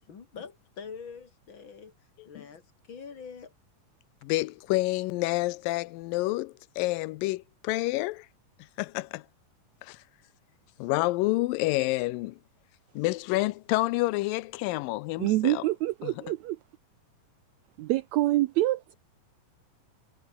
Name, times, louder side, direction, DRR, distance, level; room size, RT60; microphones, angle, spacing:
voice 1, 0.1-1.9 2.2-3.5, left 6 dB, 40° left, 2.7 m, -44 dB
voice 2, 4.2-8.3 8.8-9.2 9.8-10.0 10.8-12.4 13.0-15.6 16.0-16.1, left 20 dB, 90° left, 2.4 m, -28 dB
voice 3, 15.2-16.6 17.8-18.9, right 16 dB, 90° right, 1.6 m, -26 dB
omnidirectional pair, 3.9 m